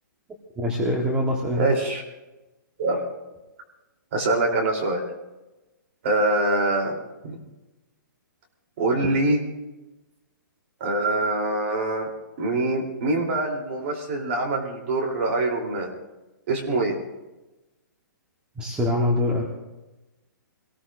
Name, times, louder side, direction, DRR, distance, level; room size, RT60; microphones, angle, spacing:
voice 1, 0.6-1.7 18.6-19.4, left 1 dB, 10° right, 0 dB, 1.1 m, -24 dB
voice 2, 1.6-2.0 2.8-3.1 4.1-5.0 6.0-7.0 7.2-7.4 8.8-9.4 10.8-12.1 12.4-15.9 16.5-17.0, right 2 dB, 40° right, 2 dB, 3.2 m, -24 dB
26.0 x 19.0 x 2.5 m, 1.1 s
hypercardioid pair, 170°, 11 cm